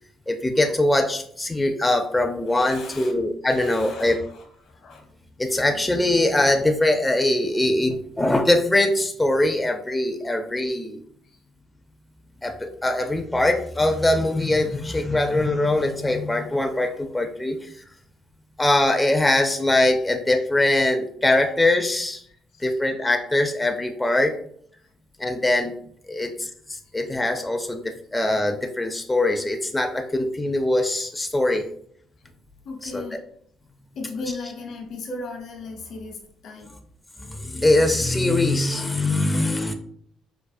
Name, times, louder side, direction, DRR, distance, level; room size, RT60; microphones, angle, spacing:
voice 1, 0.3-4.2 5.4-11.0 12.4-17.7 18.6-22.2 22.6-24.3 25.2-25.8 26.1-31.7 32.8-33.2 37.3-39.7, left 1 dB, 10° left, 4 dB, 0.4 m, -22 dB
voice 2, 2.5-3.1 3.5-5.0 11.3-11.4 15.1-15.2 22.3-22.8 26.1-26.2 32.6-33.2 33.9-36.7, left 3 dB, 75° left, 2 dB, 0.9 m, -37 dB
4.7 x 2.1 x 2.5 m, 0.65 s
supercardioid pair, 80°, 0 cm